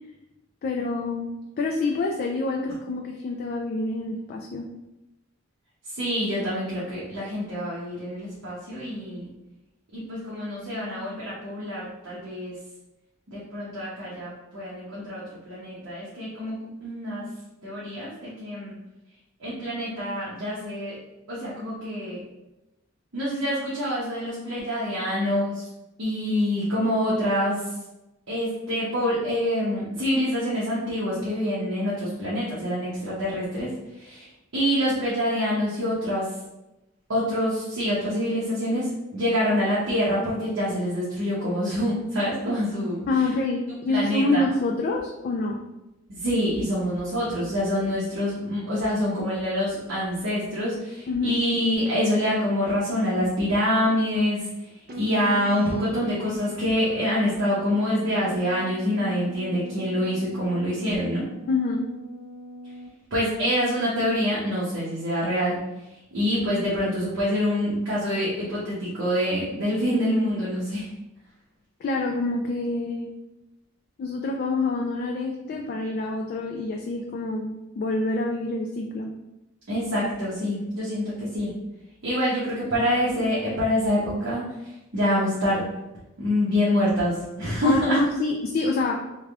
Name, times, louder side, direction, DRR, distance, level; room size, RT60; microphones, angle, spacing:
voice 1, 0.6-4.7 43.1-45.6 51.1-51.4 61.5-61.8 71.8-73.1 74.0-79.1 87.6-89.1, left 2 dB, 50° left, 1 dB, 0.3 m, -27 dB
voice 2, 5.9-9.3 9.9-12.6 13.3-17.3 17.6-18.7 19.4-21.0 21.3-22.2 23.1-25.7 26.0-27.6 28.3-34.3 34.5-36.3 37.1-43.0 43.9-44.5 46.1-54.5 54.9-61.3 63.1-65.6 66.1-70.9 79.7-81.5 82.0-85.7 86.2-88.0, equal, 75° right, -8 dB, 0.9 m, -26 dB
sound 1, 54.9-62.9, equal, 50° right, 0.5 m, -42 dB
3.4 x 2.2 x 3.4 m, 0.98 s
head